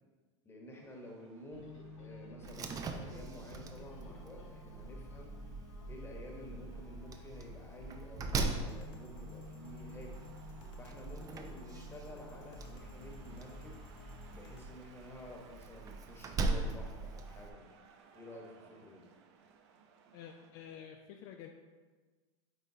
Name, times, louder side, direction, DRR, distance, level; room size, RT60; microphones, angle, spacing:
voice 1, 0.4-5.3 5.9-10.2 10.8-13.8 14.3-17.6 18.1-19.0, left 1 dB, 15° left, 0 dB, 1.2 m, -51 dB
sound 1, 0.7-20.5, right 6 dB, 65° right, 0.8 m, -63 dB
sound 2, 1.5-14.6, left 2 dB, 85° left, 0.9 m, -52 dB
Slam, 2.4-17.5, right 3 dB, 20° right, 0.5 m, -41 dB
voice 2, 20.1-21.5, left 9 dB, 55° left, 4 dB, 0.5 m, -49 dB
8.9 x 3.7 x 2.8 m, 1.3 s
supercardioid pair, 125°, 16 cm